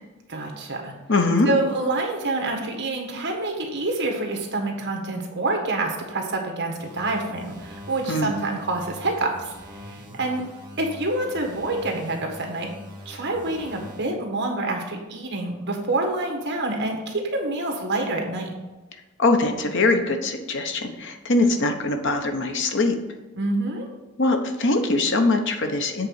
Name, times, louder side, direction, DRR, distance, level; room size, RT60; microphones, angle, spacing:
voice 1, 0.3-0.9 1.4-9.5 9.8-10.5 10.8-12.7 13.0-18.5 23.4-23.9, right 2 dB, 50° right, 2 dB, 1.6 m, -27 dB
voice 2, 1.1-1.5 8.1-8.4 19.2-23.0 24.2-26.1, left 2 dB, 55° left, 5 dB, 0.9 m, -22 dB
sound 1, 6.8-14.2, left 1 dB, 20° right, 1.6 m, -43 dB
7.8 x 4.1 x 6.5 m, 1.2 s
head